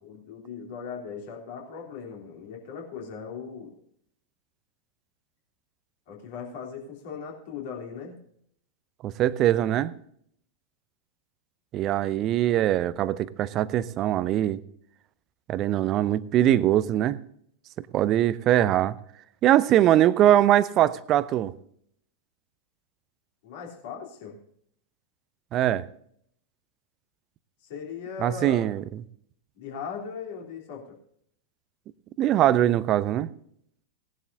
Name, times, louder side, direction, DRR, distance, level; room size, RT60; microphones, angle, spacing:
voice 1, 0.0-3.7 6.1-8.2 23.4-24.4 27.6-28.7 29.5-31.0, left 6 dB, 50° left, 0 dB, 3.3 m, -38 dB
voice 2, 9.0-9.9 11.7-14.6 15.5-17.2 17.8-19.0 19.4-21.5 25.5-25.8 28.2-28.8 32.2-33.3, right 12 dB, 35° right, 18 dB, 0.6 m, -22 dB
18.5 x 11.0 x 2.7 m, 0.67 s
figure-of-eight pair, 90°, 0 cm